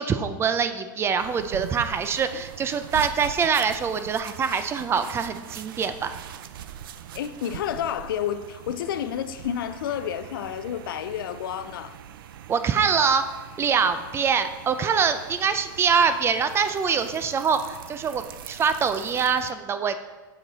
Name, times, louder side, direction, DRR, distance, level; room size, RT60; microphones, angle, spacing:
voice 1, 0.0-6.1 12.5-13.2 13.6-20.0, right 6 dB, 20° right, 0.4 m, -24 dB
sound 1, 1.2-19.5, right 10 dB, 80° right, 0.4 m, -42 dB
voice 2, 7.1-12.0, left 9 dB, 90° left, 0.5 m, -30 dB
7.7 x 5.0 x 4.0 m
supercardioid pair, 125°, 11 cm